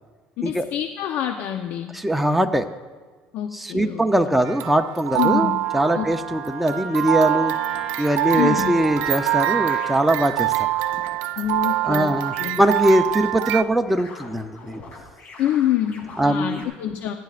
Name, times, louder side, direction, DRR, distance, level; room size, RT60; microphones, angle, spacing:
voice 1, 0.4-1.9 3.3-4.4 5.2-5.6 5.9-6.1 8.3-8.7 11.4-12.6 15.4-17.1, left 11 dB, 65° left, 5 dB, 0.8 m, -26 dB
voice 2, 1.9-2.7 3.5-7.5 8.0-10.5 11.8-14.8 16.2-16.6, right 1 dB, 5° right, 5 dB, 0.6 m, -21 dB
sound 1, 4.5-13.6, right 17 dB, 85° right, 0.4 m, -25 dB
Wind instrument woodwind instrument, 5.6-9.9, right 3 dB, 25° right, 4.6 m, -33 dB
sound 2, 7.7-16.6, left 3 dB, 50° left, 3.1 m, -43 dB
29.5 x 10.5 x 2.5 m, 1.4 s
cardioid pair, 125°, 3 cm